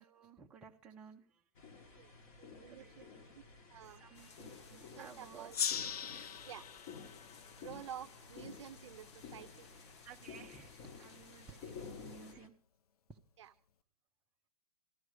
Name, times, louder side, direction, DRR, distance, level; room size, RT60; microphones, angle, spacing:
voice 1, 0.0-1.4 1.8-2.2 2.7-3.3 3.8-5.5 6.1-6.4 6.7-6.8 10.0-12.5 13.1-13.2, right 6 dB, 5° right, -1 dB, 0.5 m, -56 dB
sound 1, 1.5-12.5, left 5 dB, 30° left, 1.2 m, -53 dB
voice 2, 2.4-2.9 3.3-3.4 3.7-4.0 4.9-5.5 6.4-6.6 7.6-9.7 13.4-13.5, right 10 dB, 50° right, 13 dB, 0.6 m, -50 dB
sound 2, 4.1-12.3, left 5 dB, 50° left, 1.0 m, -60 dB
Gong, 5.5-8.7, left 8 dB, 85° left, 0.5 m, -41 dB
14.0 x 11.0 x 4.8 m, 0.43 s
hypercardioid pair, 155°, 19 cm